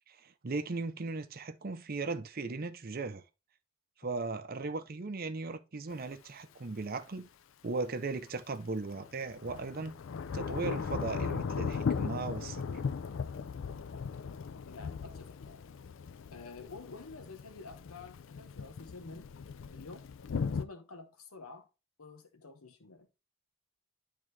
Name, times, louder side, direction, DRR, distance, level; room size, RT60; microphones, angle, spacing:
voice 1, 0.1-3.2 4.0-7.3 7.6-9.9 10.3-12.6, right 3 dB, 45° right, 0.6 m, -37 dB
Thunder / Rain, 5.9-6.0 8.9-20.7, left 5 dB, 60° left, 0.4 m, -37 dB
voice 2, 14.7-15.6 16.3-19.3 19.7-20.1 20.5-21.7 22.0-23.1, left 4 dB, 80° left, 1.0 m, -49 dB
10.5 x 3.7 x 3.2 m
head